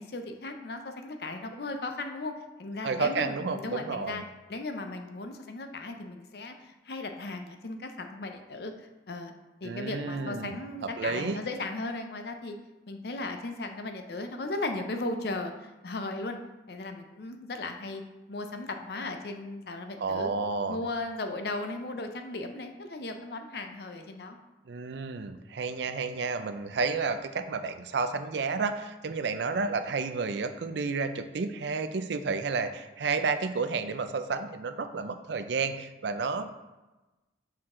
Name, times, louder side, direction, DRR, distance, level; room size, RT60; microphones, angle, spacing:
voice 1, 0.0-2.3 2.6-4.2 4.5-9.3 9.6-12.5 12.9-16.4 16.7-18.0 18.3-20.3 20.7-24.4, left 2 dB, 60° left, 6 dB, 0.6 m, -36 dB
voice 2, 2.8-4.2 9.6-10.6 11.0-11.4 20.0-20.8 24.7-36.5, right 4 dB, 75° right, 9 dB, 0.5 m, -31 dB
5.9 x 4.6 x 3.7 m, 1.1 s
head